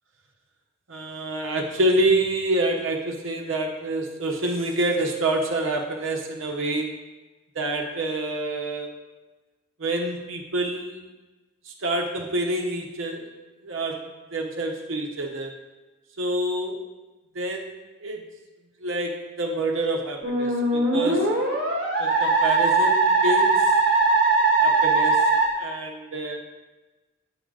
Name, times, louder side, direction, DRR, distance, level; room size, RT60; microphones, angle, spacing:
voice 1, 0.9-7.0 7.5-8.9 9.8-11.0 11.7-13.3 13.6-15.5 16.2-16.9 17.3-17.7 18.0-18.2 18.8-21.4 22.0-23.7 24.6-25.2 25.5-26.4, right 1 dB, 75° right, 2 dB, 1.0 m, -27 dB
Musical instrument, 20.2-25.5, right 3 dB, 50° right, 1.5 m, -20 dB
8.1 x 5.0 x 3.8 m, 1.2 s
head